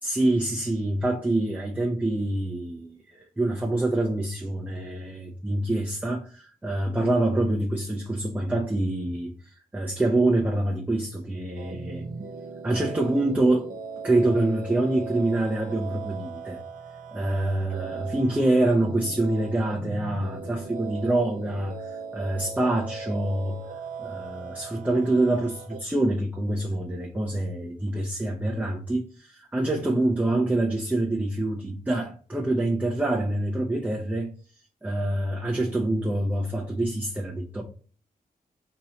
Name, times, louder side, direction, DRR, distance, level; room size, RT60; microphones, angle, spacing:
voice 1, 0.0-12.1 12.6-13.7 14.0-16.6 17.1-23.6 24.0-34.3 34.8-37.6, right 2 dB, 10° right, 0.5 m, -26 dB
sound 1, 11.6-25.8, right 4 dB, 60° right, 0.5 m, -39 dB
3.0 x 2.8 x 3.8 m
wide cardioid pair, 110°, 16 cm